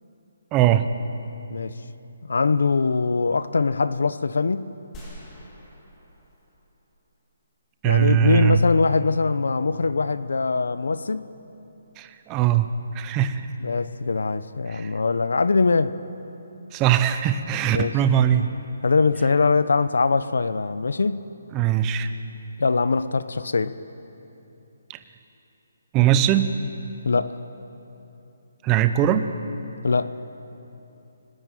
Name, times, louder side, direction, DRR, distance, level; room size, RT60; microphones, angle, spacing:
voice 1, 0.5-0.9 7.8-8.6 12.0-12.7 12.9-13.4 14.7-14.9 16.7-18.5 21.5-22.1 24.9-25.0 25.9-26.5 28.6-29.3, right 10 dB, 15° right, 10 dB, 0.7 m, -20 dB
voice 2, 2.3-4.7 7.8-11.3 13.6-15.9 17.7-17.9 18.8-21.2 22.6-23.7 27.0-27.3 29.8-30.1, left 4 dB, 80° left, 14 dB, 1.0 m, -22 dB
sound 1, 4.9-7.2, equal, 15° left, 3.2 m, -46 dB
29.5 x 19.0 x 9.1 m, 2.9 s
hypercardioid pair, 175°, 0 cm